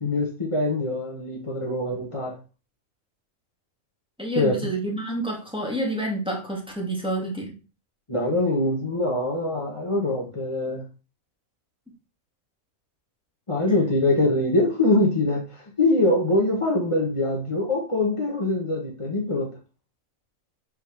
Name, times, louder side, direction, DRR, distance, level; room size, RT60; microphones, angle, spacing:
voice 1, 0.0-2.4 4.3-4.7 8.1-10.8 13.5-19.5, left 2 dB, 25° left, -1 dB, 1.3 m, -23 dB
voice 2, 4.2-7.5, right 1 dB, 5° right, -2 dB, 2.3 m, -28 dB
8.3 x 5.6 x 3.5 m, 0.32 s
omnidirectional pair, 1.5 m